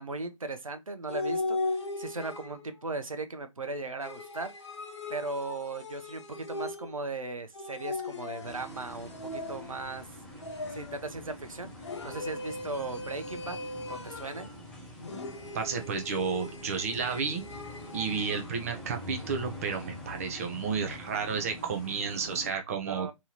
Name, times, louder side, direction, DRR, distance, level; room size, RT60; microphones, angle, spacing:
voice 1, 0.0-4.5 5.1-10.1 10.7-11.7 12.0-13.6 13.9-14.5 22.8-23.1, right 3 dB, 75° right, 0.8 m, -37 dB
sound 1, 1.1-2.8 4.0-7.1 7.5-9.9 10.4-11.1 11.8-14.6 15.0-18.5, left 2 dB, 55° left, 1.0 m, -38 dB
sound 2, 8.4-22.5, left 1 dB, 5° left, 0.4 m, -45 dB
voice 2, 15.5-17.4 17.9-23.1, right 5 dB, 25° right, 0.7 m, -32 dB
3.5 x 3.0 x 2.8 m
figure-of-eight pair, 145°, 17 cm